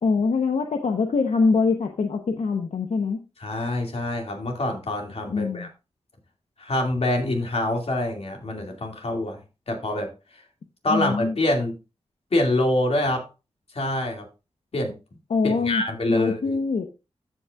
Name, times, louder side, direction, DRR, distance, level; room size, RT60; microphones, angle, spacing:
voice 1, 0.0-3.2 5.3-5.7 10.9-11.3 15.3-15.8 16.1-16.9, left 4 dB, 80° left, 4 dB, 0.9 m, -23 dB
voice 2, 3.4-5.7 6.6-9.4 9.7-10.1 10.8-11.8 12.3-13.2 13.7-14.3 14.7-15.0 15.4-16.6, left 1 dB, 65° left, 2 dB, 2.4 m, -25 dB
14.5 x 5.5 x 2.4 m, 0.29 s
wide cardioid pair, 85°, 11 cm